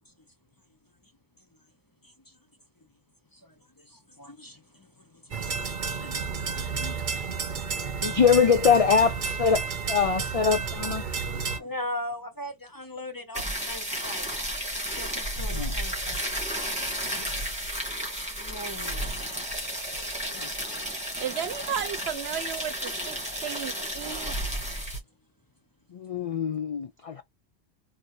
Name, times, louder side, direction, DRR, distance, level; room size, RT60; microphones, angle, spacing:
voice 1, 3.8-5.6 6.0-8.3 11.1-14.4 14.9-16.3 18.4-19.1, left 1 dB, 25° left, 0.7 m, -41 dB
sound 1, 5.3-11.6, right 5 dB, 50° right, 0.8 m, -31 dB
voice 2, 8.0-11.0 15.4-15.7 17.2-17.3 20.3-20.5 25.9-27.2, left 6 dB, 60° left, 0.3 m, -23 dB
sound 2, 13.3-25.0, equal, 5° right, 1.8 m, -32 dB
voice 3, 21.2-24.3, right 9 dB, 75° right, 0.9 m, -34 dB
3.9 x 2.8 x 3.0 m
omnidirectional pair, 1.1 m